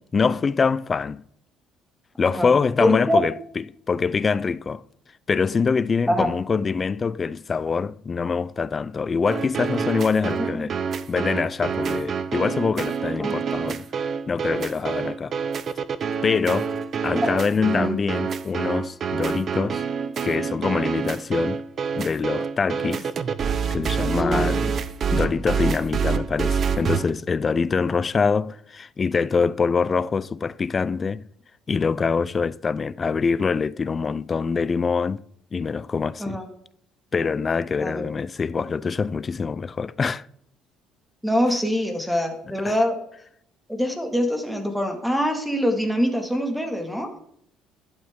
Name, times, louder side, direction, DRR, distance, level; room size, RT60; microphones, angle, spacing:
voice 1, 0.1-1.2 2.2-4.8 5.3-10.8 11.1-13.9 14.3-15.3 16.2-16.7 17.0-19.8 20.2-21.6 21.9-23.1 23.7-24.8 25.1-31.3 31.7-35.2 35.5-36.4 37.1-40.3 42.6-42.8, left 5 dB, 25° left, 0.3 m, -24 dB
voice 2, 2.2-2.5 2.8-3.2 6.1-6.3 10.4-10.7 13.2-13.7 17.7-18.0 19.6-19.7 24.1-24.5 36.2-36.5 37.8-38.1 41.2-43.0 43.7-47.2, equal, ahead, 1.9 m, -24 dB
sound 1, 9.2-27.1, right 6 dB, 35° right, 0.6 m, -27 dB
12.0 x 11.0 x 3.6 m
cardioid pair, 150°, 0 cm